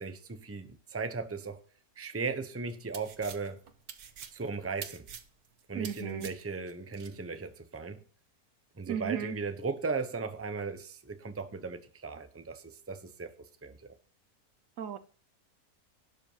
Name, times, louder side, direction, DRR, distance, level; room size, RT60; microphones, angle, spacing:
voice 1, 0.0-1.6 2.0-3.6 4.3-5.1 5.7-8.0 8.8-13.3 13.6-13.9, right 4 dB, 10° right, 0.8 m, -37 dB
sound 1, 2.7-7.2, right 7 dB, 80° right, 1.6 m, -46 dB
voice 2, 5.7-6.3 8.9-9.4 14.8-15.0, right 8 dB, 65° right, 1.2 m, -35 dB
12.0 x 7.9 x 5.6 m
omnidirectional pair, 1.6 m